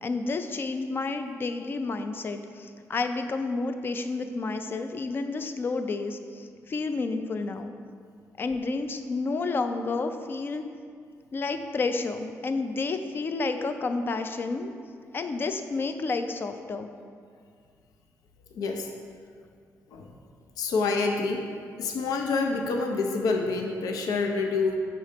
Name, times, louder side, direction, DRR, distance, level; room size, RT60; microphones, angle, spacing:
voice 1, 0.0-7.7 8.4-10.6 11.3-14.7 15.1-16.9, left 3 dB, 35° left, 8 dB, 0.4 m, -30 dB
voice 2, 18.6-18.9 19.9-20.1 20.6-21.4 21.8-24.8, left 4 dB, 80° left, 2 dB, 0.6 m, -27 dB
5.4 x 4.0 x 5.0 m, 2.2 s
cardioid pair, 125°, 6 cm